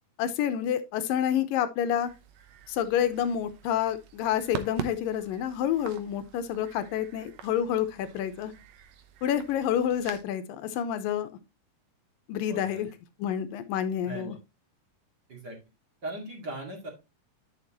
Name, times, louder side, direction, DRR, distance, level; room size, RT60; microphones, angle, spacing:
voice 1, 0.2-2.1 2.7-8.5 9.2-11.3 12.3-12.9 13.2-14.4, left 9 dB, 75° left, 11 dB, 2.3 m, -28 dB
sound 1, 2.0-10.2, right 9 dB, 70° right, 2.3 m, -44 dB
voice 2, 12.5-12.8 14.0-14.4 15.3-15.6 16.0-16.9, right 1 dB, 35° right, 1 dB, 2.1 m, -38 dB
10.5 x 6.7 x 2.9 m, 0.24 s
omnidirectional pair, 4.4 m